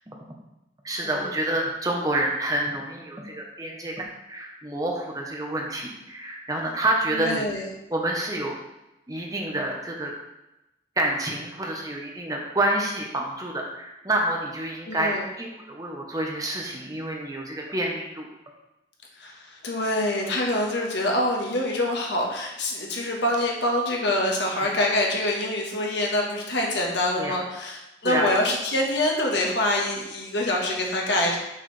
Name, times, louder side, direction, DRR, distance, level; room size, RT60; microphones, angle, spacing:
voice 1, 0.8-7.5 7.9-8.6 9.1-10.1 11.0-18.3 27.2-27.4 28.0-28.3, right 1 dB, 20° right, 0 dB, 0.9 m, -28 dB
voice 2, 7.1-7.7 14.9-15.2 19.2-31.4, left 1 dB, 80° left, -1 dB, 1.4 m, -25 dB
6.4 x 6.4 x 3.3 m, 0.93 s
head